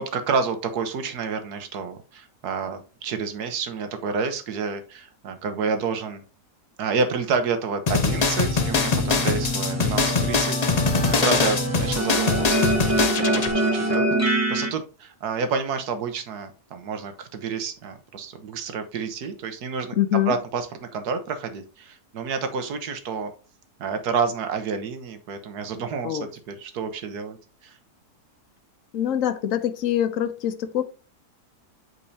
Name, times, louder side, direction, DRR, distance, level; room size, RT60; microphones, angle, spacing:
voice 1, 0.0-6.2 6.8-19.9 20.2-23.3 23.8-27.4 27.6-27.8, right 5 dB, 85° right, 1.5 m, -29 dB
sound 1, 7.9-13.5, left 4 dB, 40° left, 0.6 m, -23 dB
sound 2, 8.1-14.7, right 1 dB, 10° right, 0.9 m, -25 dB
voice 2, 19.9-20.3 26.0-26.3 28.9-30.8, left 11 dB, 60° left, 1.0 m, -24 dB
8.4 x 4.6 x 2.7 m
omnidirectional pair, 1.6 m